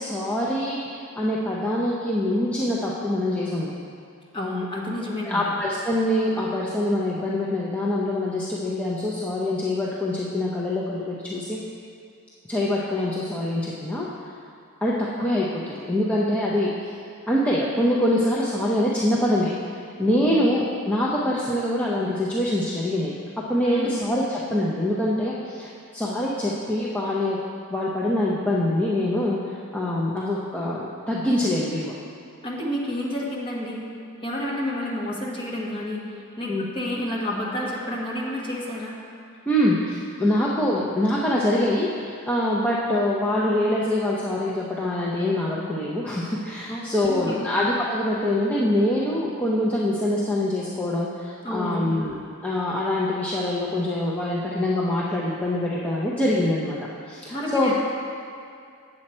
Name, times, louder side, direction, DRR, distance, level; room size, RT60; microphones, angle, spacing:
voice 1, 0.0-3.7 5.2-11.6 12.5-14.1 14.8-16.9 17.3-19.5 20.0-23.1 23.5-27.4 27.7-31.9 36.5-36.7 39.5-52.2 52.4-56.8 57.1-57.8, left 1 dB, 5° left, -6 dB, 0.6 m, -24 dB
voice 2, 4.3-5.5 20.1-20.3 23.6-23.9 32.4-33.8 34.2-36.0 36.4-38.9 46.7-47.5 51.4-51.8 57.3-57.8, left 1 dB, 25° left, -4 dB, 1.3 m, -30 dB
7.8 x 7.4 x 4.3 m, 2.4 s
head